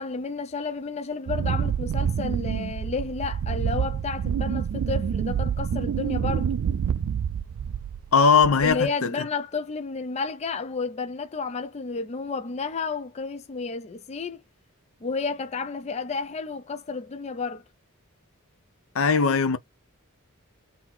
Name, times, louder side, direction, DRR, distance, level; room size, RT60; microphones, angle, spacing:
voice 1, 0.0-6.5 8.6-14.4 15.0-17.6, left 4 dB, 30° left, 0.4 m, -31 dB
Wind, 1.3-8.1 8.4-8.9, right 7 dB, 75° right, 0.3 m, -27 dB
voice 2, 8.1-9.1 18.9-19.6, left 5 dB, 70° left, 0.6 m, -19 dB
3.8 x 2.7 x 4.3 m
head